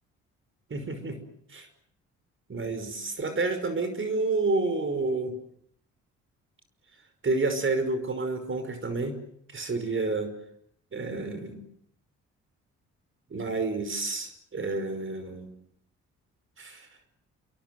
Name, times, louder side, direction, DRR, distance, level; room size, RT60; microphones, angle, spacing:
voice 1, 0.7-1.2 1.5-1.7 2.5-5.3 7.2-9.2 9.5-10.3 10.9-11.6 13.3-15.5 16.6-16.9, right 3 dB, 40° right, 9 dB, 5.5 m, -29 dB
28.0 x 22.5 x 7.9 m, 0.69 s
supercardioid pair, 60°, 31 cm